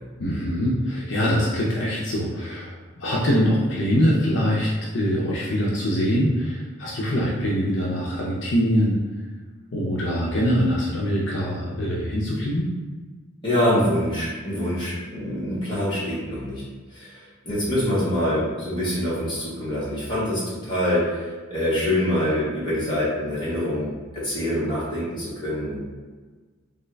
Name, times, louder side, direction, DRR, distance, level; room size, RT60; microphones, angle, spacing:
voice 1, 0.2-9.0 9.7-12.7, equal, 65° left, -5 dB, 0.5 m, -23 dB
voice 2, 13.4-16.6 16.9-25.8, left 1 dB, 25° left, -9 dB, 1.2 m, -25 dB
3.5 x 2.3 x 3.3 m, 1.4 s
head